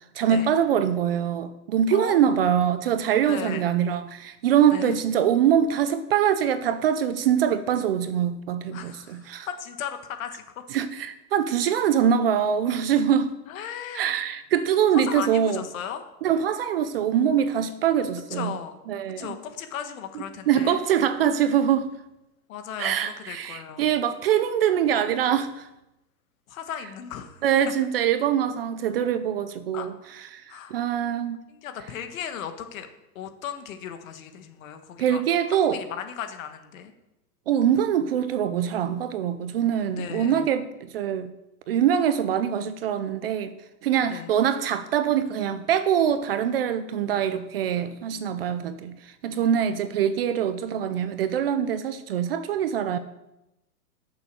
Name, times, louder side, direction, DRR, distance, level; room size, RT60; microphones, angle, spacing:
voice 1, 0.2-9.5 10.7-13.3 13.9-15.6 16.2-18.5 18.9-19.4 20.5-21.9 22.8-25.7 27.4-29.9 30.3-30.4 30.7-31.4 35.0-35.8 37.5-40.7 40.9-41.3 41.7-43.5 43.8-53.0, right 9 dB, 40° right, 0.5 m, -23 dB
voice 2, 1.9-2.4 3.3-3.7 4.7-5.0 8.7-10.4 13.5-14.1 14.9-16.0 18.3-18.8 19.2-20.8 22.5-23.8 26.5-27.4 29.7-29.9 30.5-30.8 31.5-32.9 33.1-35.2 35.5-36.9 40.0-40.5 44.1-44.4 49.3-49.9, left 8 dB, 55° left, 1.5 m, -36 dB
10.5 x 7.0 x 6.7 m
hypercardioid pair, 150°, 49 cm